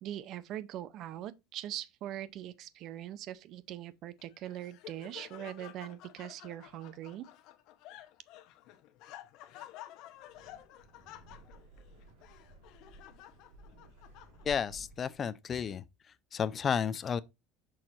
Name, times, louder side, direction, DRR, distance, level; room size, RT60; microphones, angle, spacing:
voice 1, 0.0-7.3, right 12 dB, 45° right, 0.6 m, -42 dB
Laughter, 4.2-14.7, left 13 dB, 55° left, 0.8 m, -52 dB
Wind, 10.1-15.2, right 2 dB, 65° right, 3.4 m, -55 dB
voice 2, 14.4-15.8 16.3-17.2, left 7 dB, 25° left, 0.4 m, -32 dB
6.3 x 3.8 x 4.3 m
cardioid pair, 145°, 0 cm